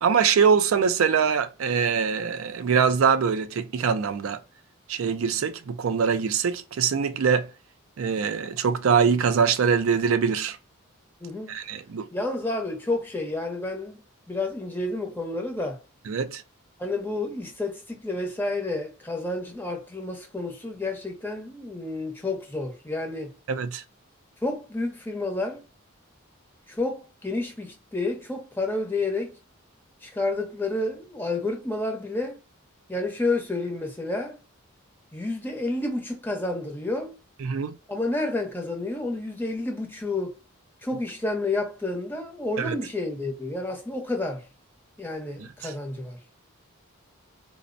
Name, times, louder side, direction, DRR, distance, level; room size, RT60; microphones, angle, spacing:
voice 1, 0.0-4.4 4.9-7.5 8.0-10.6 11.5-12.1 16.1-16.4 23.5-23.8 37.4-37.7 42.6-42.7 45.6-45.7, right 6 dB, 70° right, 0.4 m, -23 dB
voice 2, 11.2-11.6 12.1-14.0 14.3-15.8 16.8-23.3 24.4-25.6 26.7-29.4 30.0-32.4 32.9-34.4 35.1-37.1 37.9-40.3 40.8-44.5 45.0-46.2, left 2 dB, 10° left, 0.7 m, -30 dB
4.1 x 2.0 x 2.5 m
head